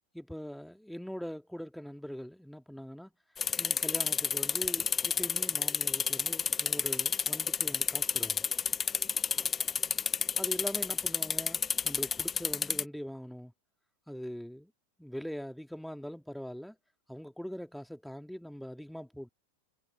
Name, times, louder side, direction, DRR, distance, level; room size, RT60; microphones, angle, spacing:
voice 1, 0.1-3.1 3.6-8.4 10.4-13.5 14.1-14.7 15.0-16.8 17.1-19.3, equal, ahead, 3.0 m, -42 dB
sound 1, 3.4-12.8, left 6 dB, 20° left, 1.2 m, -31 dB
figure-of-eight pair, 90°, 0 cm